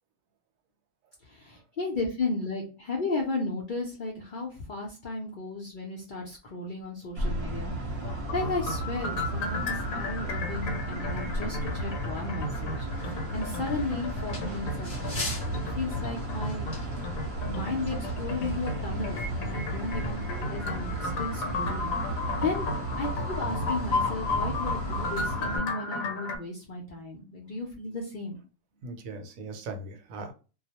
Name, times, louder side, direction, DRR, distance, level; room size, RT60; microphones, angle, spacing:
voice 1, 1.3-8.0 8.3-15.3 15.6-16.7 17.5-22.0 22.4-22.7 23.0-28.4, left 3 dB, 65° left, 0.5 m, -34 dB
sound 1, 7.2-25.6, right 1 dB, 55° right, 0.8 m, -34 dB
sound 2, 8.0-26.4, left 3 dB, 85° left, 1.0 m, -34 dB
sound 3, 12.8-25.3, left 2 dB, 25° left, 0.9 m, -46 dB
voice 2, 19.7-20.1 28.8-30.3, right 2 dB, 80° right, 1.0 m, -39 dB
2.3 x 2.0 x 2.7 m
omnidirectional pair, 1.4 m